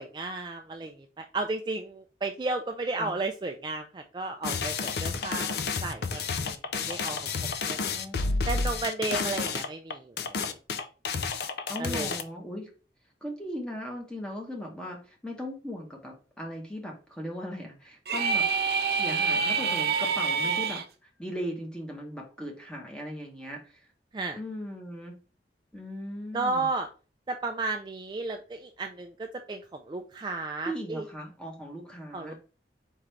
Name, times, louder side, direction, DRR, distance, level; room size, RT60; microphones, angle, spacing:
voice 1, 0.0-5.5 5.8-7.8 8.5-10.6 11.8-12.1 24.1-24.4 26.3-26.9 27.3-31.0 32.1-32.3, right 3 dB, 25° right, 4 dB, 0.3 m, -33 dB
sound 1, 4.4-12.2, left 4 dB, 65° left, 0.4 m, -30 dB
voice 2, 7.8-8.8 11.7-12.7 13.2-18.5 18.9-20.8 21.2-23.8 24.3-25.1 25.7-26.7 30.7-32.3, equal, 5° left, 0 dB, 1.0 m, -38 dB
sound 2, 18.1-20.8, right 5 dB, 60° right, 0.6 m, -26 dB
4.4 x 3.7 x 3.2 m, 0.36 s
head